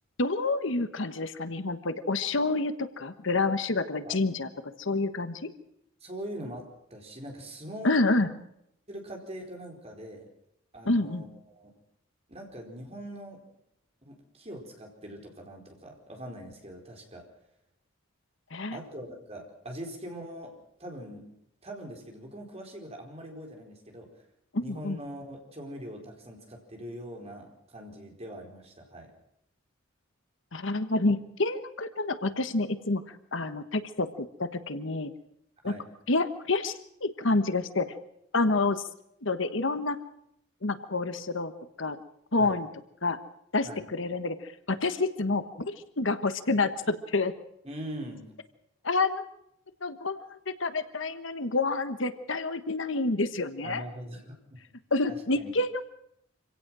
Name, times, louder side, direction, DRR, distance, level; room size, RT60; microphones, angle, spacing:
voice 1, 0.2-4.5 4.8-5.5 7.8-8.3 10.8-11.2 18.5-18.8 24.5-25.0 30.5-35.1 35.6-35.7 36.1-36.7 37.0-37.9 38.3-38.8 39.2-40.0 40.6-41.5 41.8-42.0 42.3-42.7 43.0-43.2 43.5-47.3 48.8-49.2 49.8-53.8 54.9-55.9, left 3 dB, 65° left, 11 dB, 1.3 m, -28 dB
voice 2, 6.0-7.9 8.9-10.3 10.7-11.7 12.3-13.4 14.0-17.3 18.7-21.2 21.6-24.2 24.6-29.1 35.6-35.8 42.4-42.6 43.6-43.8 47.6-48.3 53.6-54.6 55.1-55.5, equal, 30° right, 2 dB, 4.6 m, -42 dB
26.0 x 17.0 x 6.2 m, 0.75 s
head